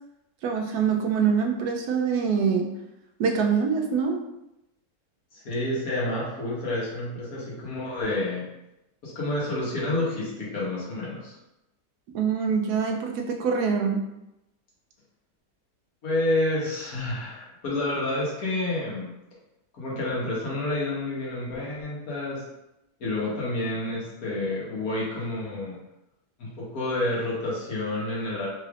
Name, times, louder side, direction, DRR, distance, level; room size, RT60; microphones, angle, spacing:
voice 1, 0.4-2.7 3.2-4.2 12.1-14.0, right 6 dB, 80° right, 2 dB, 1.1 m, -24 dB
voice 2, 5.3-8.5 9.0-11.4 16.0-19.1 19.7-22.4 23.0-25.8 26.4-28.5, left 2 dB, 65° left, -6 dB, 1.6 m, -29 dB
4.0 x 3.2 x 2.4 m, 0.89 s
omnidirectional pair, 1.7 m